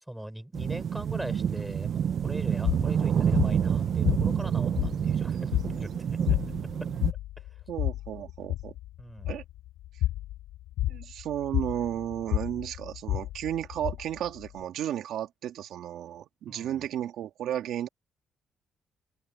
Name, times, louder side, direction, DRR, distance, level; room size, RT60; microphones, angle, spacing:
voice 1, 0.1-5.9 6.3-6.4 7.4-7.5 9.0-9.4 16.5-16.8, right 1 dB, 5° right, 6.2 m, -41 dB
sound 1, 0.5-7.1, right 8 dB, 60° right, 0.7 m, -28 dB
sound 2, 2.6-14.6, left 14 dB, 90° left, 5.2 m, -31 dB
voice 2, 7.7-8.7 9.3-9.4 10.9-17.9, right 11 dB, 80° right, 2.1 m, -33 dB
cardioid pair, 90°, 0 cm